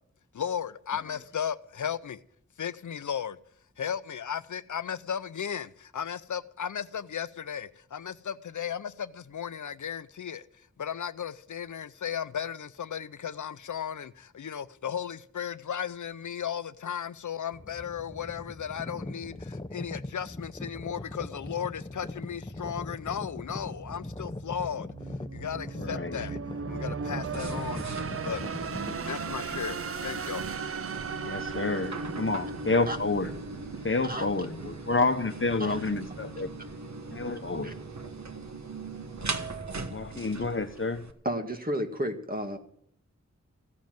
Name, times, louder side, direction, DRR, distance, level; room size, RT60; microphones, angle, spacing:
voice 1, 0.3-2.2 2.6-3.4 3.8-10.4 10.8-24.9 25.3-26.4 26.7-27.8 28.2-28.4 29.0-30.5, left 8 dB, 85° left, 0.6 m, -35 dB
sound 1, 17.5-29.0, left 2 dB, 15° left, 0.7 m, -40 dB
sound 2, 23.0-33.6, right 6 dB, 50° right, 0.5 m, -38 dB
voice 2, 25.8-26.2 31.2-33.3 33.8-36.5 37.1-37.7 39.9-41.0, left 3 dB, 45° left, 1.1 m, -29 dB
sound 3, 27.2-41.1, right 3 dB, 70° right, 1.3 m, -39 dB
voice 3, 39.6-40.0 41.2-42.6, equal, 30° right, 2.0 m, -32 dB
15.5 x 7.4 x 9.1 m
wide cardioid pair, 70°, 29 cm